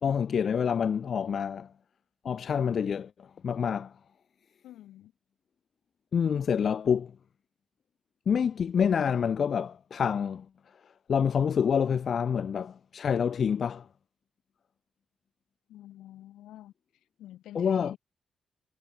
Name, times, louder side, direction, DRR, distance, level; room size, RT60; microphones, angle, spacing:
voice 1, 0.0-1.7 2.2-3.9 6.1-7.1 8.3-10.5 11.1-13.9 17.5-17.9, left 7 dB, 60° left, 2.0 m, -27 dB
voice 2, 4.6-5.1 15.7-16.7 17.2-18.0, left 13 dB, 90° left, 6.0 m, -48 dB
supercardioid pair, 55°, 0 cm